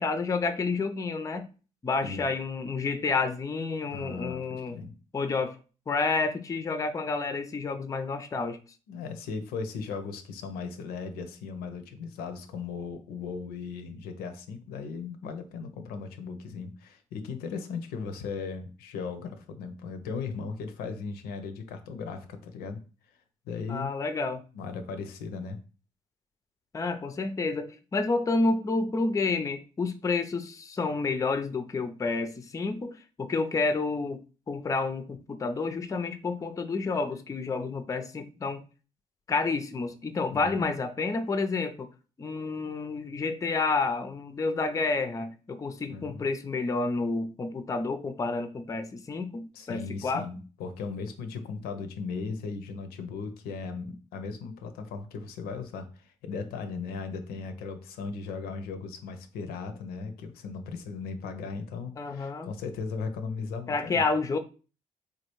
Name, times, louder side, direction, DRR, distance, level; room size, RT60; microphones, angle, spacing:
voice 1, 0.0-1.5 1.8-4.8 5.1-5.6 5.9-8.6 23.7-24.4 26.7-34.2 34.5-38.6 39.3-41.9 42.2-50.3 62.0-62.5 63.7-64.4, left 3 dB, 20° left, 0.4 m, -29 dB
voice 2, 2.0-2.3 3.9-4.9 8.9-22.8 23.5-23.9 24.5-25.6 40.3-40.6 45.5-46.3 49.5-64.0, left 5 dB, 70° left, 0.5 m, -37 dB
3.3 x 2.3 x 3.0 m
hypercardioid pair, 45°, 16 cm